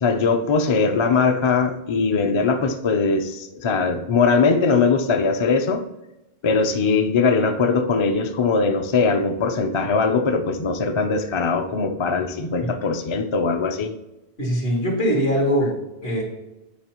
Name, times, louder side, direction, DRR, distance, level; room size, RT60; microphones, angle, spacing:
voice 1, 0.0-5.9 6.4-13.9, left 4 dB, 40° left, 0.5 m, -21 dB
voice 2, 14.4-16.2, equal, 75° left, 2.8 m, -22 dB
11.5 x 4.8 x 3.0 m
omnidirectional pair, 1.0 m